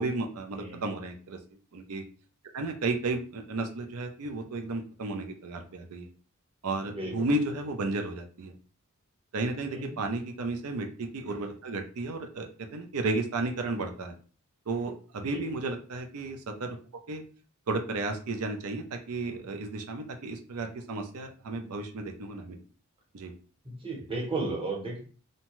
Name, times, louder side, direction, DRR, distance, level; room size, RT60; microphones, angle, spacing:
voice 1, 0.0-1.4 1.7-2.0 2.5-6.1 6.6-8.5 9.3-14.2 14.7-16.8 17.1-17.2 17.7-22.6 23.1-23.3, right 2 dB, 85° right, 5 dB, 0.5 m, -33 dB
voice 2, 6.9-7.3 9.7-9.9 15.2-15.4 23.6-25.0, right 2 dB, 25° right, -2 dB, 0.9 m, -34 dB
2.7 x 2.2 x 3.0 m, 0.40 s
head